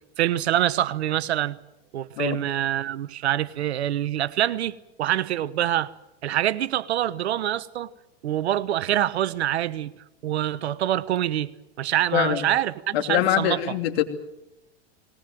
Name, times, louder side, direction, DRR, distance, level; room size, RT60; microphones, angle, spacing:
voice 1, 0.2-1.6 1.9-5.9 6.2-7.9 8.2-9.9 10.2-11.5 11.8-13.6, right 12 dB, 85° right, 1.1 m, -25 dB
voice 2, 12.1-12.4 12.9-14.0, left 12 dB, 70° left, 3.0 m, -23 dB
20.0 x 19.5 x 9.2 m
hypercardioid pair, 120°, 32 cm